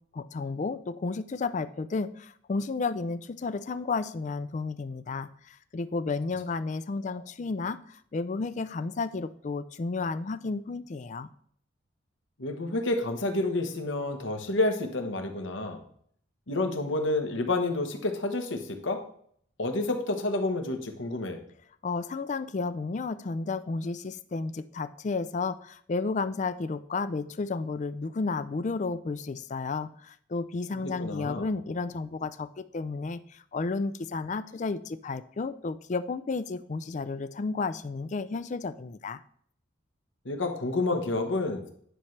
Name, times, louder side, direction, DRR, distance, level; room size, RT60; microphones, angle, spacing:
voice 1, 0.1-11.3 21.8-39.2, left 4 dB, 40° left, 14 dB, 0.4 m, -32 dB
voice 2, 12.4-15.8 16.5-19.0 19.6-21.4 30.8-31.5 40.2-41.6, left 2 dB, 75° left, 5 dB, 1.2 m, -29 dB
10.0 x 5.8 x 3.2 m, 0.62 s
head